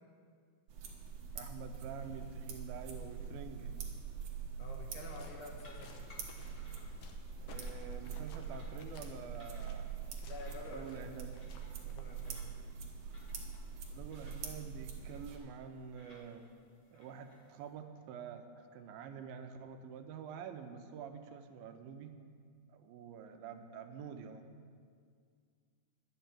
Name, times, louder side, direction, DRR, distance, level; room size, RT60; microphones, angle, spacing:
sound 1, 0.7-15.4, right 5 dB, 60° right, 2.0 m, -44 dB
voice 1, 1.4-3.7 7.4-9.9 10.7-11.3 13.5-13.6 13.9-16.5 16.9-22.2 22.7-24.4, right 7 dB, 80° right, 7 dB, 2.5 m, -47 dB
voice 2, 4.6-6.1 10.3-11.0 11.9-12.4, left 2 dB, 65° left, 0 dB, 2.5 m, -49 dB
sound 2, 4.9-12.6, left 4 dB, 85° left, 1.3 m, -58 dB
sound 3, 5.3-17.7, left 2 dB, 35° left, 1.7 m, -64 dB
11.0 x 6.8 x 8.8 m, 2.1 s
omnidirectional pair, 4.2 m